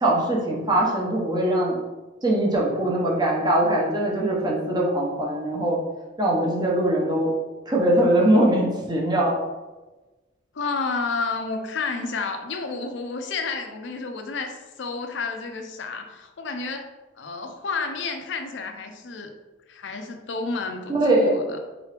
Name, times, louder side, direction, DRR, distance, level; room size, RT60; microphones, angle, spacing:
voice 1, 0.0-1.8 2.2-5.8 6.2-7.3 7.7-9.3 20.9-21.3, right 1 dB, 20° right, -3 dB, 0.8 m, -21 dB
voice 2, 10.5-16.8 17.2-19.3 19.7-21.6, left 4 dB, 65° left, 5 dB, 0.5 m, -30 dB
3.7 x 3.0 x 3.3 m, 1.2 s
head